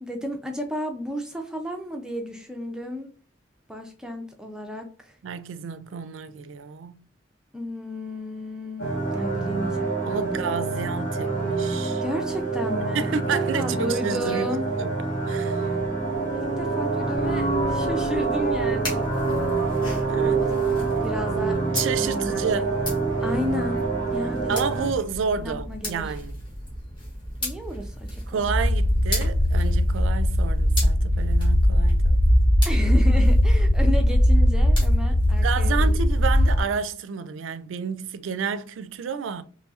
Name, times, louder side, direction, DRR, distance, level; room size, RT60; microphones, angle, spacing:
voice 1, 0.0-3.1 3.7-5.2 7.5-10.4 12.0-13.1 13.3-14.7 16.3-19.1 20.2-21.6 21.9-22.6 23.2-23.8 24.1-24.6 25.4-26.1 27.4-28.5 32.6-35.9, equal, 5° right, 0.4 m, -33 dB
voice 2, 5.2-7.0 10.1-12.0 12.9-14.5 14.8-15.7 20.1-20.4 21.7-22.8 24.5-26.4 28.3-32.2 35.4-39.4, right 6 dB, 80° right, 0.4 m, -30 dB
sound 1, 8.8-24.9, right 3 dB, 85° left, 1.7 m, -26 dB
sound 2, 17.2-36.6, equal, 25° left, 1.5 m, -37 dB
sound 3, 28.4-36.6, equal, 55° left, 0.6 m, -19 dB
4.0 x 3.0 x 2.3 m
head